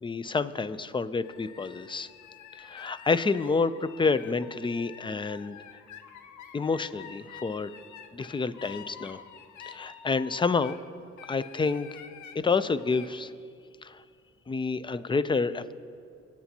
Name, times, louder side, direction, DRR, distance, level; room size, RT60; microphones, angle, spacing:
voice 1, 0.0-2.1 2.6-5.6 6.5-7.7 8.1-9.2 9.7-10.8 11.3-11.9 12.4-13.3 13.8-14.0 14.5-15.7, left 4 dB, 15° left, 14 dB, 0.4 m, -28 dB
sound 1, 1.2-10.8 11.2-12.4 12.8-13.1, left 8 dB, 75° left, 0.7 m, -48 dB
22.5 x 8.8 x 2.8 m, 2.4 s
cardioid pair, 90°, 30 cm